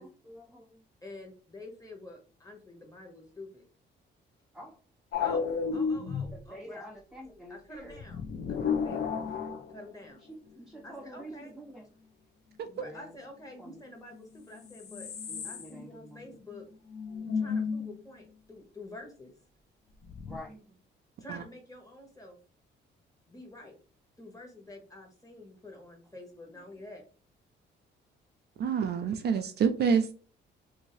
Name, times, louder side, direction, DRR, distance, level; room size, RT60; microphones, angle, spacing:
voice 1, 0.0-0.8 4.5-4.8 6.3-8.0 9.0-9.4 10.2-11.9 12.8-13.1 13.6-13.8 15.3-16.2 20.3-20.8 26.6-26.7, equal, ahead, 0 dB, 0.5 m, -48 dB
voice 2, 1.0-3.7 5.2-6.9 7.5-8.2 8.5-9.4 9.7-10.2 10.8-11.5 12.6-15.1 15.4-16.7 17.3-19.3 21.2-22.4 23.3-23.7 24.2-27.0, left 1 dB, 15° left, 1 dB, 1.3 m, -48 dB
sound 1, 5.1-6.4 7.9-10.1 14.2-14.3 14.5-15.8 16.1-16.2 16.5-16.6 16.9-17.9 20.1-20.4, left 6 dB, 55° left, 0.7 m, -32 dB
voice 3, 28.6-30.1, right 6 dB, 55° right, 8 dB, 0.4 m, -27 dB
2.7 x 2.6 x 3.1 m, 0.38 s
cardioid pair, 90°, 20 cm